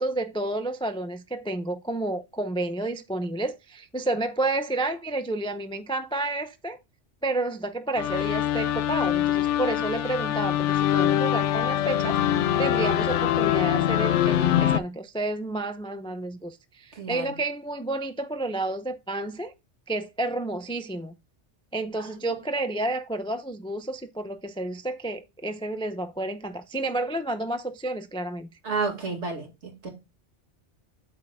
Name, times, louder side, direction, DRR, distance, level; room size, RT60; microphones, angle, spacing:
voice 1, 0.0-6.8 7.2-19.5 19.9-21.1 21.7-28.5, right 2 dB, 10° left, 0.3 m, -30 dB
sound 1, 8.0-14.8, left 11 dB, 80° left, 0.9 m, -24 dB
voice 2, 17.0-17.3 22.0-22.1 28.6-29.9, right 4 dB, 70° right, 2.3 m, -31 dB
11.5 x 4.6 x 2.2 m
omnidirectional pair, 1.2 m